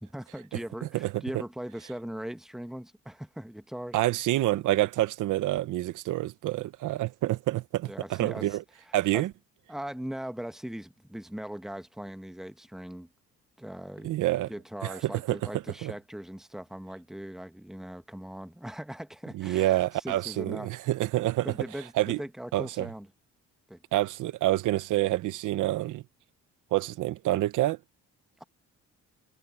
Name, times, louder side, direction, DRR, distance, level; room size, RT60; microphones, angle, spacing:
voice 1, 0.0-4.0 7.9-8.5 9.1-9.2 9.7-13.1 13.6-14.2 14.5-20.7 21.4-23.1 23.7-23.8, right 1 dB, ahead, 1.2 m, -40 dB
voice 2, 3.9-8.6 8.9-9.3 14.0-14.5 14.8-15.4 15.8-15.9 19.3-21.5 22.0-22.2 22.5-22.9 23.9-26.0 26.7-27.8, right 15 dB, 85° right, 0.9 m, -27 dB
cardioid pair, 90°, 30 cm